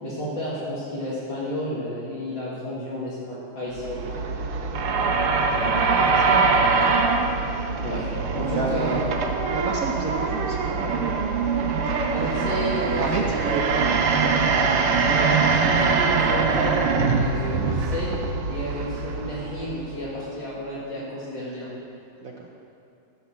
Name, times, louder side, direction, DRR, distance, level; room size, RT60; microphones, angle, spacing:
voice 1, 0.0-4.2 5.5-5.7 7.8-9.1 12.1-13.6 14.1-16.8 17.0-21.8, equal, 60° left, -10 dB, 2.8 m, -31 dB
sound 1, 3.7-20.1, right 4 dB, 85° right, 1.8 m, -23 dB
voice 2, 6.1-7.1 8.5-11.6 12.2-12.4 12.8-14.0 22.2-22.5, right 4 dB, 65° right, 0 dB, 0.8 m, -32 dB
14.5 x 5.8 x 7.1 m, 2.9 s
omnidirectional pair, 2.4 m